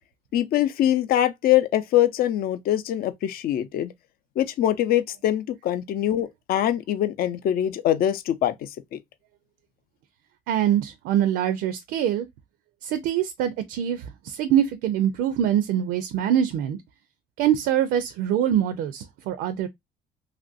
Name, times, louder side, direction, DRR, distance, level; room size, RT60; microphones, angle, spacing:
voice 1, 0.3-3.9 4.4-9.0, left 12 dB, 60° left, 0.5 m, -23 dB
voice 2, 10.5-12.3 12.8-16.8 17.4-19.7, right 10 dB, 85° right, 0.5 m, -24 dB
3.0 x 2.5 x 2.5 m
cardioid pair, 110°, 17 cm